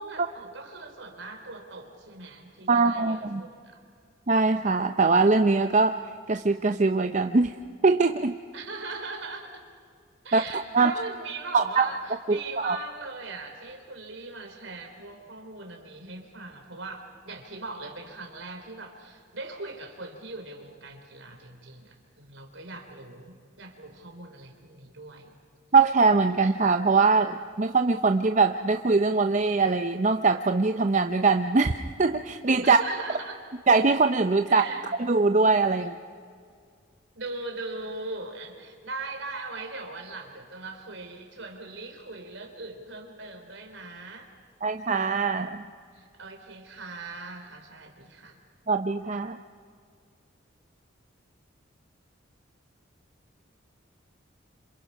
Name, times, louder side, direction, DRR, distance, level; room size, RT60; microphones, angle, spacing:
voice 1, 0.0-3.8 8.5-9.5 10.2-25.3 32.6-33.4 34.5-34.8 35.8-35.9 37.1-44.3 45.9-48.4, right 3 dB, 65° right, 4 dB, 3.4 m, -40 dB
voice 2, 2.7-3.4 4.3-6.0 6.3-7.5 7.8-8.3 10.3-10.9 11.5-11.8 12.3-12.4 12.6-12.8 25.7-32.8 33.7-34.6 35.0-36.0 44.6-45.6 48.7-49.4, right 4 dB, 35° right, 7 dB, 0.6 m, -22 dB
27.0 x 27.0 x 5.5 m, 2.2 s
head